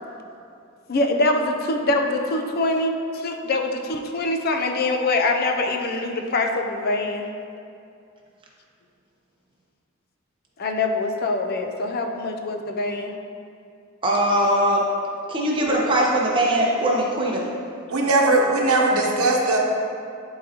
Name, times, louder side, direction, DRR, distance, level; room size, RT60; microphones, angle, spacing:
voice 1, 0.9-7.3 10.6-13.1, left 2 dB, 45° left, 4 dB, 0.5 m, -24 dB
voice 2, 14.0-14.9 15.3-17.5, right 1 dB, 25° right, -3 dB, 0.9 m, -21 dB
voice 3, 17.9-19.6, right 2 dB, 85° right, 0 dB, 0.9 m, -19 dB
11.0 x 3.9 x 2.8 m, 2.5 s
head